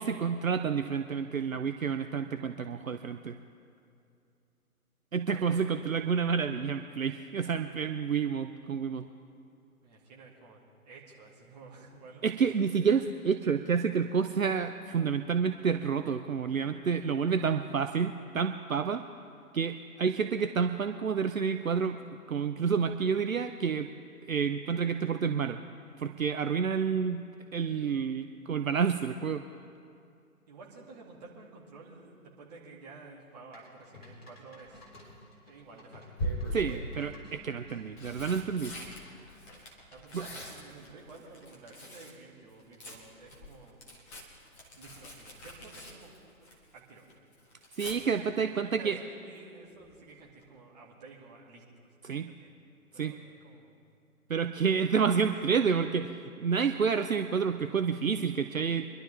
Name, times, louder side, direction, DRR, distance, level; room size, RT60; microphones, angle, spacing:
voice 1, 0.0-3.4 5.1-9.0 12.2-19.0 19.5-22.0 22.3-23.9 24.3-25.6 26.0-27.2 27.5-29.4 36.5-38.7 40.1-40.2 47.8-49.0 52.0-52.3 53.0-53.1 54.3-58.9, right 6 dB, 65° right, 8 dB, 0.7 m, -29 dB
voice 2, 5.3-6.1 9.8-12.5 30.5-34.8 35.5-36.2 39.9-43.8 44.8-47.0 48.2-52.0 52.2-52.5 52.9-53.8 55.2-55.8, right 3 dB, 25° right, -4 dB, 2.4 m, -51 dB
sound 1, 33.5-37.8 39.0-39.5, left 2 dB, 40° left, 3.8 m, -54 dB
Tearing, 34.7-35.1 36.2-36.9 37.7-42.2 42.5-46.8 47.1-48.0 49.8-50.1 50.4-50.5, equal, 10° left, 1.0 m, -41 dB
24.5 x 11.5 x 3.5 m, 2.5 s
figure-of-eight pair, 140°, 44 cm